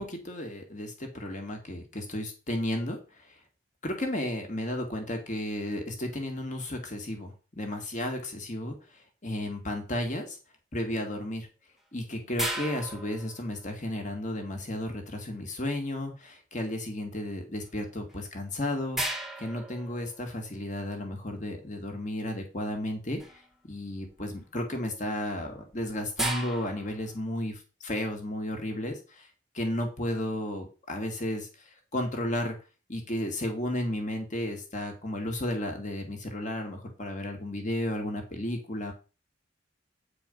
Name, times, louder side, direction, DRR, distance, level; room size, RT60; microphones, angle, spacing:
voice 1, 0.0-3.0 3.8-8.8 9.2-10.4 10.7-11.5 11.9-23.2 23.7-29.0 29.5-31.5 31.9-32.6 32.9-38.9, left 1 dB, 40° left, 3 dB, 2.1 m, -33 dB
sound 1, 12.4-13.9 18.1-18.2 18.9-20.5 23.2-23.5 24.0-24.4 25.3-27.2, right 1 dB, ahead, 1.2 m, -36 dB
9.0 x 4.9 x 5.4 m, 0.34 s
head